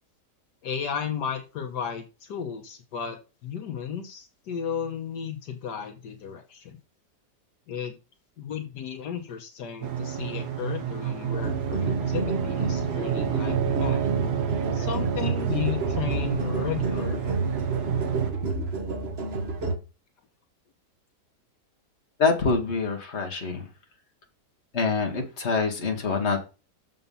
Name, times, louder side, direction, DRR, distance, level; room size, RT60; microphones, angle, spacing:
voice 1, 0.6-6.8 7.7-8.0 8.4-14.1 14.7-17.3, left 8 dB, 75° left, 5 dB, 1.6 m, -34 dB
sound 1, 9.8-18.3, right 9 dB, 70° right, 1.7 m, -29 dB
sound 2, 11.3-19.7, right 3 dB, 40° right, 1.3 m, -30 dB
voice 2, 22.2-23.7 24.7-26.4, left 4 dB, 40° left, 3 dB, 2.0 m, -25 dB
6.9 x 5.9 x 5.5 m, 0.31 s
omnidirectional pair, 1.8 m